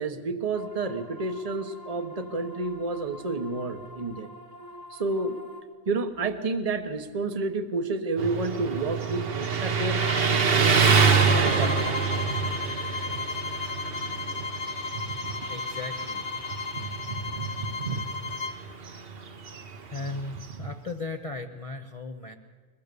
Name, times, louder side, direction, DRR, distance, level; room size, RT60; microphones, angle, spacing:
voice 1, 0.0-4.3 4.9-5.4 5.9-10.8 11.4-12.0, right 3 dB, 30° right, 9 dB, 1.2 m, -30 dB
sound 1, 0.5-5.6, left 1 dB, 80° right, 2.4 m, -46 dB
Motorcycle, 8.2-20.8, right 5 dB, 50° right, 1.3 m, -27 dB
sound 2, 10.0-18.6, left 4 dB, 60° left, 1.2 m, -34 dB
voice 2, 15.5-16.3 16.6-16.9 19.9-22.3, left 3 dB, 30° left, 3 dB, 0.9 m, -37 dB
22.0 x 22.0 x 6.9 m, 1.5 s
omnidirectional pair, 1.4 m